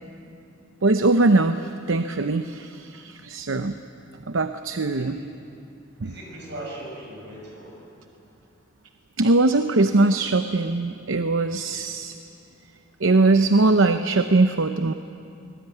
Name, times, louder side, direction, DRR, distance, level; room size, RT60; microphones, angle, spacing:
voice 1, 0.8-3.8 4.3-5.2 6.0-6.1 9.2-12.2 13.0-14.9, right 2 dB, 75° right, 8 dB, 0.8 m, -21 dB
voice 2, 4.9-5.3 6.0-7.9, right 1 dB, 55° right, -1 dB, 6.2 m, -39 dB
24.0 x 19.5 x 9.1 m, 2.6 s
head